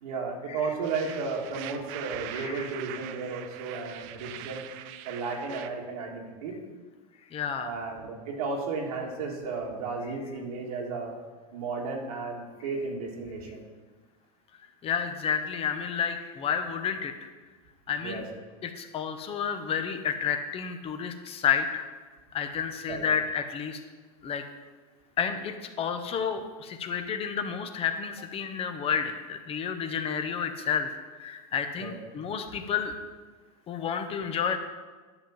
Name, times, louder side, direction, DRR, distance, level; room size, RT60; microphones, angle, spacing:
voice 1, 0.0-4.7 5.0-6.6 7.6-11.1 11.5-13.6 18.0-18.2 22.9-23.0 31.8-32.0, right 4 dB, 80° right, 0 dB, 1.9 m, -34 dB
sound 1, 0.8-5.7, right 12 dB, 55° right, 0.6 m, -42 dB
voice 2, 2.3-2.7 7.3-7.7 14.8-17.1 17.9-18.2 18.6-21.9 22.3-23.8 24.2-24.4 25.2-30.9 31.2-32.9 33.7-34.6, left 7 dB, 30° left, 8 dB, 0.9 m, -30 dB
10.5 x 3.7 x 7.2 m, 1.4 s
supercardioid pair, 120°, 19 cm